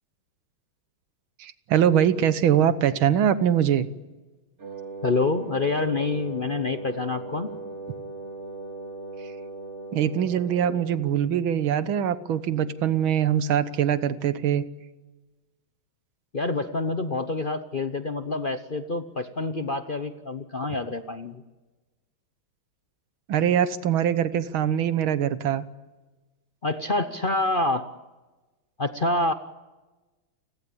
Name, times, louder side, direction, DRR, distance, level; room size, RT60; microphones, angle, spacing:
voice 1, 1.4-3.9 9.2-9.3 9.9-14.6 23.3-25.6, right 9 dB, 80° right, 13 dB, 1.9 m, -23 dB
Wind instrument woodwind instrument, 4.6-11.2, right 3 dB, 35° right, 3.2 m, -38 dB
voice 2, 5.0-7.5 16.3-21.4 26.6-27.9 28.8-29.3, left 2 dB, 45° left, 9 dB, 0.7 m, -27 dB
29.5 x 21.0 x 8.5 m, 1.2 s
omnidirectional pair, 2.2 m